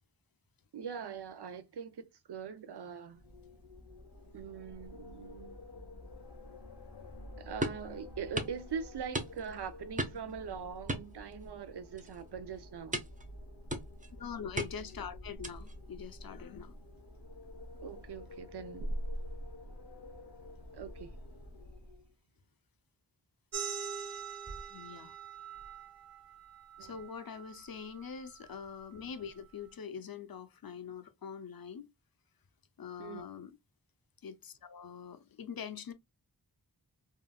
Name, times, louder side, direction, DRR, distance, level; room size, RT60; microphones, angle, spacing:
voice 1, 0.7-3.2 4.3-5.6 7.4-13.0 17.8-19.0 19.3-19.4 20.7-21.2 26.8-27.0 33.0-33.2, right 6 dB, 75° right, 0.5 m, -42 dB
Wind, 3.1-22.1, equal, 80° left, 1.1 m, -47 dB
sound 1, 7.6-7.9 8.4-8.6 9.1-9.6 10.0-10.3 10.9-11.7 12.0-12.2 12.9-13.3 13.7-14.1 14.6-15.0 15.4-15.8, right 1 dB, 20° right, 0.6 m, -36 dB
voice 2, 14.1-16.8 24.7-25.2 26.8-31.9 32.8-33.6 34.2-35.9, left 7 dB, 60° left, 0.6 m, -44 dB
sound 2, 23.5-28.7, right 7 dB, 40° right, 0.9 m, -44 dB
3.7 x 2.4 x 2.2 m
wide cardioid pair, 55°, 40 cm